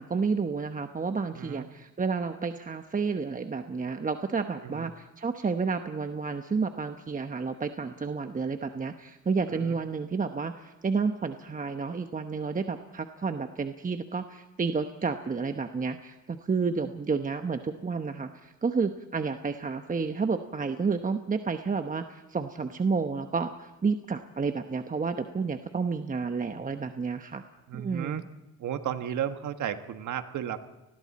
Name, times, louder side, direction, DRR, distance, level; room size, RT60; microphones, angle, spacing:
voice 1, 0.0-27.4 27.7-28.2, right 5 dB, 25° right, 7 dB, 1.1 m, -30 dB
voice 2, 1.3-1.7 4.6-4.9 9.5-9.7 27.7-28.2 28.6-30.6, right 9 dB, 75° right, 9 dB, 1.6 m, -34 dB
30.0 x 20.5 x 4.3 m, 1.0 s
cardioid pair, 90°, 30 cm